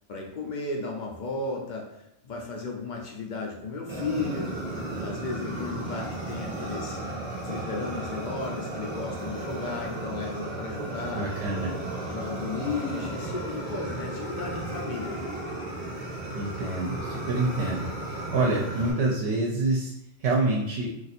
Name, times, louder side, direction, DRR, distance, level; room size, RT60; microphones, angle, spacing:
voice 1, 0.1-4.6 5.0-7.0 7.4-11.3 12.1-15.4, left 3 dB, 55° left, 0 dB, 0.6 m, -34 dB
Fire, 3.9-18.9, right 2 dB, 35° right, 0.8 m, -34 dB
voice 2, 11.1-11.7 16.3-19.9 20.2-20.9, right 2 dB, 70° right, -1 dB, 0.8 m, -27 dB
2.5 x 2.4 x 4.1 m, 0.81 s
omnidirectional pair, 1.2 m